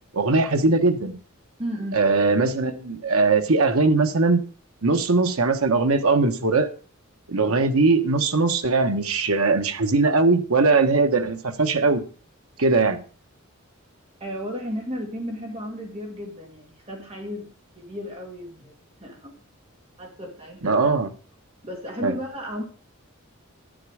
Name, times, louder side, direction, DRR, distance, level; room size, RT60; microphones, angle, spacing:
voice 1, 0.1-1.1 1.9-4.4 4.8-6.7 7.3-12.0 12.6-13.0 20.6-21.1 22.0-22.2, right 3 dB, 85° right, 1.2 m, -20 dB
voice 2, 1.6-2.1 14.2-17.5 17.8-19.4 20.0-20.8 21.6-22.6, equal, 30° right, 2.2 m, -34 dB
10.5 x 7.7 x 4.9 m
head